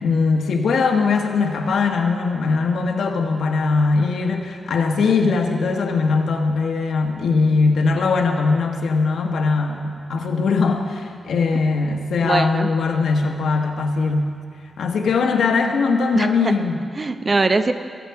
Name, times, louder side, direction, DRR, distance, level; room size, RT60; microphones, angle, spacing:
voice 1, 0.0-14.3 14.8-16.8, left 4 dB, 90° left, 3 dB, 1.2 m, -20 dB
voice 2, 12.2-12.7 16.1-16.5 17.0-17.7, right 3 dB, 35° right, 9 dB, 0.6 m, -21 dB
20.0 x 8.2 x 4.7 m, 2.2 s
wide cardioid pair, 110°, 0 cm